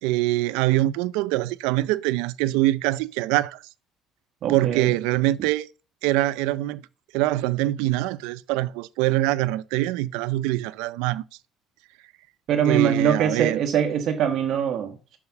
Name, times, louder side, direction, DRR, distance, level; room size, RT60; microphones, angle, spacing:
voice 1, 0.0-3.6 4.5-5.7 6.0-6.8 7.1-11.2 12.6-13.6, right 17 dB, 90° right, 0.5 m, -24 dB
voice 2, 4.4-4.9 12.5-15.2, right 8 dB, 60° right, 1.1 m, -23 dB
7.2 x 4.9 x 6.7 m
cardioid pair, 110°, 0 cm